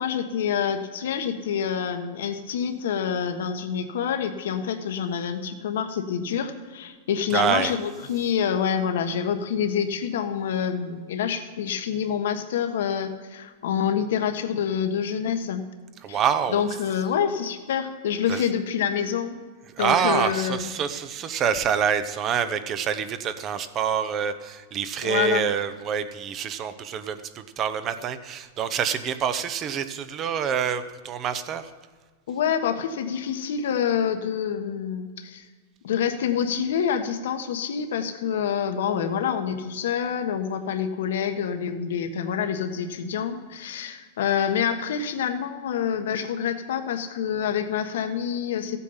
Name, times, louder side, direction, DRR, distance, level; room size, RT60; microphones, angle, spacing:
voice 1, 0.0-15.6 16.1-16.2 16.5-19.4 19.8-20.7 25.0-25.5 32.3-35.4 35.8-48.8, left 8 dB, 75° left, 7 dB, 1.3 m, -27 dB
voice 2, 7.3-7.7 16.0-16.6 18.3-18.4 19.7-31.7, right 7 dB, 25° right, 11 dB, 0.7 m, -26 dB
15.0 x 8.3 x 5.8 m, 1.4 s
supercardioid pair, 150°, 0 cm